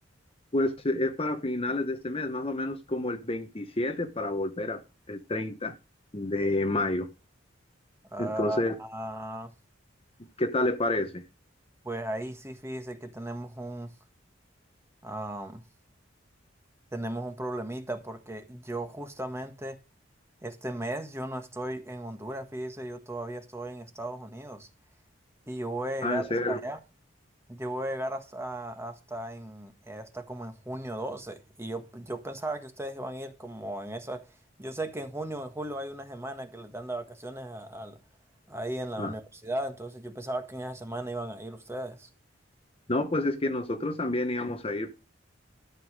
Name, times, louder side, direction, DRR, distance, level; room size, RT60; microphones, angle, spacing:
voice 1, 0.5-4.8 5.1-5.7 6.1-7.1 8.2-8.7 10.4-11.2 26.0-26.6 39.0-39.1 42.9-44.9, left 2 dB, 30° left, 1.1 m, -29 dB
voice 2, 8.1-9.5 11.8-13.9 15.0-15.6 16.9-19.8 20.4-24.7 25.5-26.8 27.5-34.3 34.6-38.0 38.5-42.1, right 1 dB, 15° right, 1.6 m, -36 dB
13.0 x 5.7 x 6.5 m
head